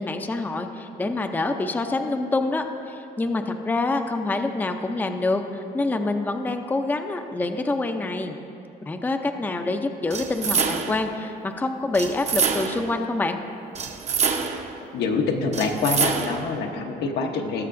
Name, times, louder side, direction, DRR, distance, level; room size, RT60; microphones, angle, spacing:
voice 1, 0.0-8.4 8.8-13.4, left 2 dB, 10° left, 5 dB, 0.5 m, -26 dB
sound 1, 10.1-11.1 11.9-12.9 13.8-14.7 15.5-16.5, right 6 dB, 40° right, 0.8 m, -26 dB
voice 2, 14.9-17.7, left 4 dB, 75° left, 3 dB, 0.9 m, -25 dB
18.0 x 6.7 x 2.6 m, 2.7 s
cardioid pair, 110°, 17 cm